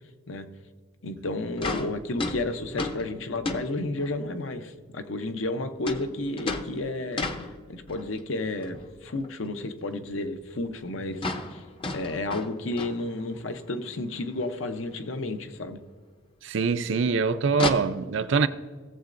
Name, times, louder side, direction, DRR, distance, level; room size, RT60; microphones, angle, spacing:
voice 1, 1.0-7.3 7.7-11.6 11.9-15.8, left 2 dB, 70° left, 0.8 m, -32 dB
sound 1, 1.3-1.4 1.6-4.3 5.9-8.2 8.6-9.3 9.6-9.7 10.1-10.2 10.4-10.5 10.7-10.9 11.1-13.5 13.9-14.0 14.3-14.4 15.6-15.7 17.5-17.7, left 3 dB, 25° left, 0.6 m, -34 dB
voice 2, 16.4-18.5, right 4 dB, 65° right, 0.5 m, -24 dB
17.5 x 7.5 x 2.6 m
head